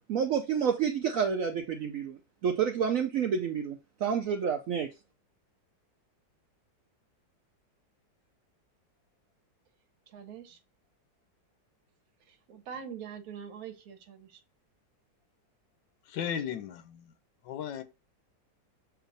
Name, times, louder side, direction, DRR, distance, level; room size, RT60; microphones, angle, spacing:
voice 1, 0.1-4.9, right 7 dB, 85° right, 0.7 m, -29 dB
voice 2, 10.1-10.6 12.5-14.3, right 7 dB, 60° right, 1.2 m, -43 dB
voice 3, 16.1-17.0 17.4-17.8, left 8 dB, 85° left, 1.3 m, -35 dB
6.7 x 2.9 x 2.6 m
omnidirectional pair, 2.0 m